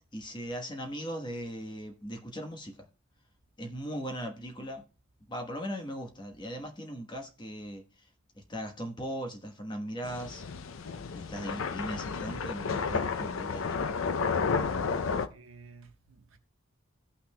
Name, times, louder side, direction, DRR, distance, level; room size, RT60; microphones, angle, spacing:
voice 1, 0.1-2.9 3.6-4.9 5.3-8.1 8.3-10.4 11.1-13.9, equal, 20° left, 1.2 m, -39 dB
sound 1, 10.0-15.3, left 5 dB, 75° left, 0.5 m, -32 dB
voice 2, 15.3-16.4, right 4 dB, 80° right, 1.2 m, -53 dB
17.5 x 5.8 x 2.2 m
head